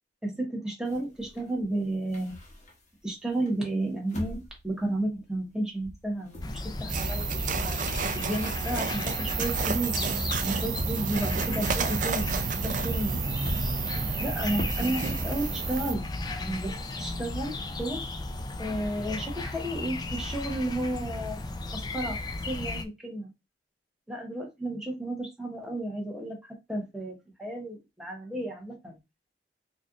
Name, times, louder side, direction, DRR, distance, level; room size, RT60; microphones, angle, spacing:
voice 1, 0.2-2.4 3.0-7.3 7.6-7.8 8.1-10.0 10.4-12.3 12.6-13.3 14.2-18.0 18.6-21.4 21.7-22.2 22.5-23.3 24.1-29.0, right 1 dB, 5° right, 1.0 m, -32 dB
sound 1, 0.9-3.0 3.5-5.6 5.8-11.5 11.8-15.2, left 1 dB, 40° left, 0.9 m, -42 dB
sound 2, 6.4-22.8, left 2 dB, 20° left, 0.3 m, -35 dB
sound 3, 6.9-15.9, right 5 dB, 45° right, 0.4 m, -31 dB
4.2 x 2.5 x 2.4 m
head